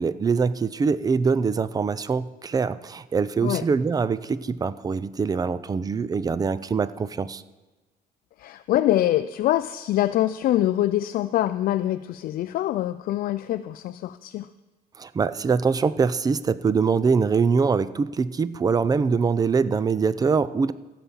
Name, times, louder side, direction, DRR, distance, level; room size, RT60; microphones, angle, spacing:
voice 1, 0.0-7.4 15.0-20.7, right 5 dB, 20° right, 16 dB, 0.5 m, -23 dB
voice 2, 8.4-14.5, left 13 dB, 60° left, 11 dB, 0.4 m, -24 dB
15.5 x 5.9 x 7.1 m, 1.2 s
cardioid pair, 110°, 17 cm